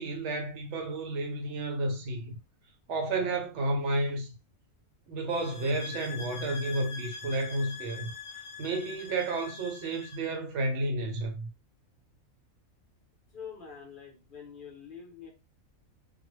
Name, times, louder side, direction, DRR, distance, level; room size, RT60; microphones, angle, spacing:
voice 1, 0.0-2.3 2.9-4.3 5.1-8.1 8.6-11.5, right 2 dB, 65° right, 0.8 m, -31 dB
sound 1, 5.3-10.3, left 5 dB, 70° left, 1.0 m, -43 dB
voice 2, 13.3-15.3, left 7 dB, 50° left, 0.7 m, -45 dB
2.4 x 2.1 x 3.0 m
omnidirectional pair, 1.5 m